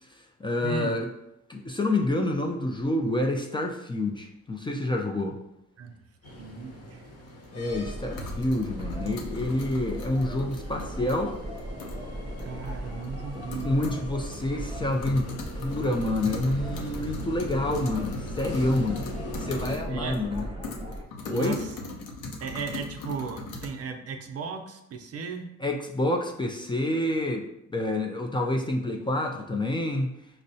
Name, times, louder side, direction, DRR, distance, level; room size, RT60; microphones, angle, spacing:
voice 1, 0.0-1.1 1.5-5.4 7.5-11.4 13.3-19.1 19.4-20.5 21.2-21.6 25.6-30.2, left 1 dB, 15° left, 1 dB, 0.4 m, -28 dB
voice 2, 0.6-1.0 5.8-6.0 6.4-7.1 12.4-13.8 19.9-20.2 21.3-21.7 22.4-25.5, right 5 dB, 55° right, 5 dB, 0.5 m, -36 dB
sound 1, 6.2-19.7, equal, 50° left, 0.9 m, -42 dB
sound 2, 7.3-7.4 8.1-11.2 11.6-12.0 12.4-12.5 13.0-13.1 13.5-14.1 14.3-14.4 14.7-19.8 20.1-23.7, left 2 dB, 80° left, 0.7 m, -39 dB
sound 3, 7.7-21.1, equal, 15° right, 0.7 m, -38 dB
5.3 x 2.0 x 2.7 m, 0.83 s
cardioid pair, 90°, 30 cm